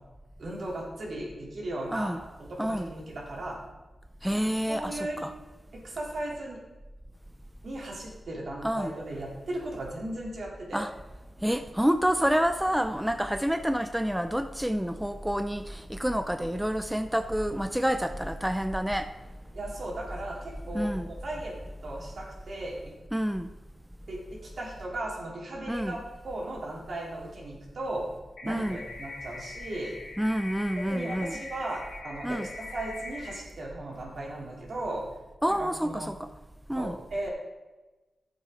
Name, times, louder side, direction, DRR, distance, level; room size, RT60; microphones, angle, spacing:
voice 1, 0.4-2.1 2.4-3.6 4.7-5.2 5.7-6.6 7.6-10.8 19.5-21.5 21.8-22.8 24.1-26.0 26.2-28.1 28.4-29.9 30.9-35.0 35.6-36.1 36.7-37.3, right 1 dB, 70° right, -3 dB, 3.4 m, -36 dB
voice 2, 1.9-2.2 2.6-2.9 4.2-5.3 8.6-8.9 10.7-10.9 11.4-19.1 20.7-21.1 23.1-23.5 25.7-26.0 28.5-28.8 30.2-31.4 32.2-32.5 35.4-36.3 36.7-37.0, equal, 5° right, 8 dB, 0.5 m, -28 dB
sound 1, 28.4-33.4, left 3 dB, 80° left, 2.5 m, -42 dB
12.5 x 7.6 x 3.8 m, 1.1 s
cardioid pair, 60°, 0 cm